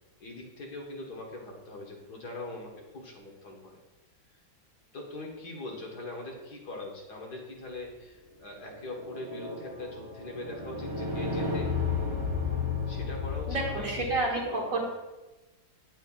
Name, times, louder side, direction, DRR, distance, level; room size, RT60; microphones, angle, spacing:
voice 1, 0.2-3.8 4.9-11.7 12.9-14.8, left 2 dB, 60° left, -1 dB, 1.8 m, -42 dB
sound 1, 8.6-14.2, left 4 dB, 15° right, 1.4 m, -33 dB
voice 2, 13.5-14.8, right 2 dB, 50° right, -1 dB, 1.5 m, -29 dB
9.2 x 8.1 x 2.4 m, 1.1 s
omnidirectional pair, 2.0 m